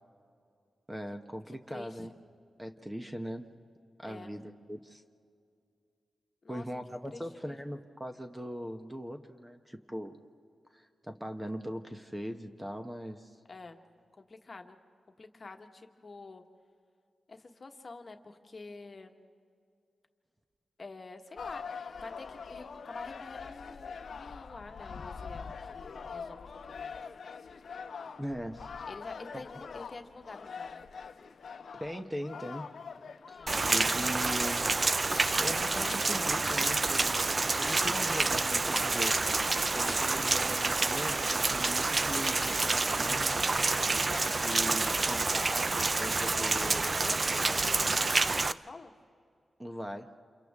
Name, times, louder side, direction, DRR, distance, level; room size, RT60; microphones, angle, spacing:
voice 1, 0.9-2.1 2.6-3.5 4.0-5.0 6.5-10.2 10.7-13.4 28.2-28.7 29.3-29.4 31.8-32.7 33.3-34.7 35.4-39.3 39.7-43.5 44.4-46.8 49.6-50.2, equal, 10° right, 6 dB, 0.9 m, -40 dB
voice 2, 1.5-2.1 4.0-4.3 6.4-6.6 7.1-7.6 13.5-13.8 14.2-14.8 15.2-16.4 17.3-19.1 20.8-21.6 22.0-27.2 28.9-30.8 33.4-33.8 43.9-44.3 46.3-48.9, left 3 dB, 40° left, 5 dB, 1.3 m, -47 dB
sound 1, 21.4-38.0, left 5 dB, 70° left, 0.8 m, -44 dB
Rain, 33.5-48.5, right 3 dB, 35° right, 0.4 m, -28 dB
sound 2, 34.1-34.4 35.0-36.0 36.3-41.2 41.4-44.5 44.7-45.0, left 2 dB, 20° left, 0.7 m, -47 dB
29.5 x 28.0 x 3.6 m, 2.4 s
wide cardioid pair, 115°, 0 cm